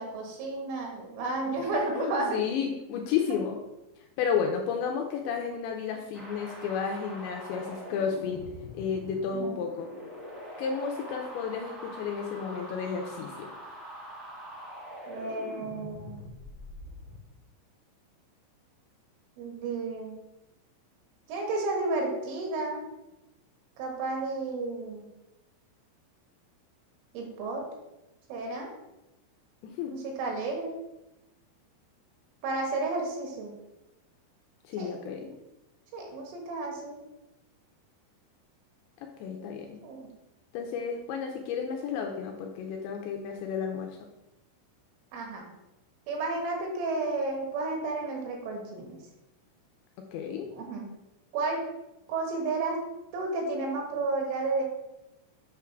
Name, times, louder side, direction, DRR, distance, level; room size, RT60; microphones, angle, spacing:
voice 1, 0.0-2.4 9.3-9.6 15.1-16.3 19.4-20.1 21.3-22.8 23.8-25.1 27.1-27.6 28.3-28.7 29.9-30.7 32.4-33.5 34.8-34.9 35.9-37.0 39.8-40.1 45.1-45.5 46.1-49.0 50.5-50.9 51.3-51.6 52.1-52.8 53.1-54.6, right 3 dB, 80° right, 1 dB, 4.1 m, -32 dB
voice 2, 2.0-3.6 4.2-8.4 8.7-9.9 10.6-13.5 29.6-30.0 34.6-35.3 39.2-39.8 40.5-44.1 50.1-50.5, left 6 dB, 85° left, 2 dB, 2.7 m, -32 dB
sound 1, 6.1-17.1, equal, ahead, 0.9 m, -44 dB
8.3 x 3.6 x 5.8 m, 0.95 s
omnidirectional pair, 5.7 m